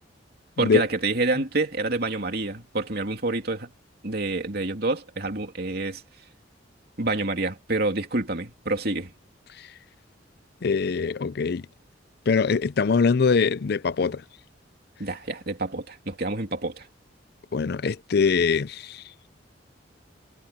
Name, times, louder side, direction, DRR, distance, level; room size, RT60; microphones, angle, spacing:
voice 1, 0.6-3.7 4.0-6.0 7.0-9.1 15.0-16.9, right 2 dB, 55° right, 2.9 m, -27 dB
voice 2, 10.6-11.6 12.3-14.2 17.5-19.0, left 5 dB, 55° left, 0.5 m, -23 dB
head